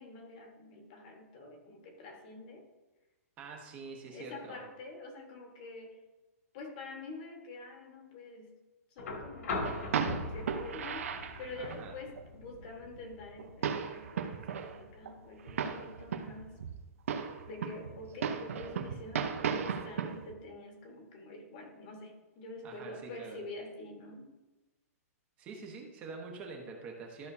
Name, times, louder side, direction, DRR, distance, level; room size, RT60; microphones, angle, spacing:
voice 1, 0.0-2.6 4.1-6.0 6.5-8.5 8.9-9.8 10.3-16.6 17.4-24.3, left 2 dB, 30° left, 3 dB, 1.6 m, -46 dB
voice 2, 3.4-4.6 11.6-11.9 22.6-23.4 25.4-27.3, right 4 dB, 15° right, 1 dB, 1.2 m, -45 dB
sound 1, 9.0-17.0 18.4-18.5, left 3 dB, 70° left, 2.7 m, -42 dB
sound 2, 9.6-11.9 12.2-12.3 12.5-12.6 13.0-13.1 13.4-14.8 15.0-15.1 15.5-16.8 17.1-20.3, right 7 dB, 60° right, 0.9 m, -36 dB
13.5 x 6.3 x 2.8 m, 1.1 s
hypercardioid pair, 175°, 8 cm